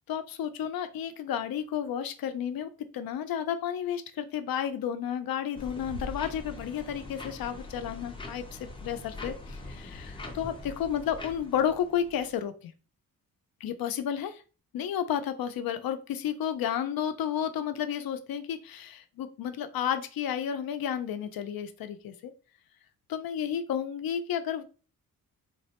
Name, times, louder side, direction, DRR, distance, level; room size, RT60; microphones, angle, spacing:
voice 1, 0.1-12.7 13.6-14.4 14.7-22.3 23.1-24.7, left 9 dB, 80° left, 10 dB, 0.5 m, -32 dB
sound 1, 5.5-12.3, left 2 dB, 15° left, 0.4 m, -43 dB
Bass drum, 5.9-7.3, equal, 65° right, 0.7 m, -44 dB
3.8 x 2.1 x 2.8 m, 0.36 s
wide cardioid pair, 175°, 36 cm